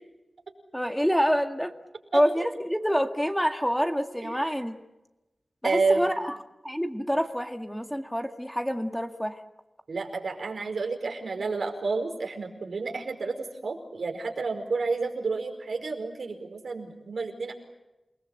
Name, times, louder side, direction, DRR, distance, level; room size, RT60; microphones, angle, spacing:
voice 1, 0.7-1.7 2.1-4.8 5.6-6.4 6.6-9.4, equal, 5° left, 6 dB, 1.9 m, -27 dB
voice 2, 2.1-2.5 4.2-4.3 5.6-6.0 9.9-17.5, right 4 dB, 85° right, 4 dB, 4.9 m, -30 dB
29.0 x 20.0 x 7.9 m, 1.0 s
wide cardioid pair, 80°, 0 cm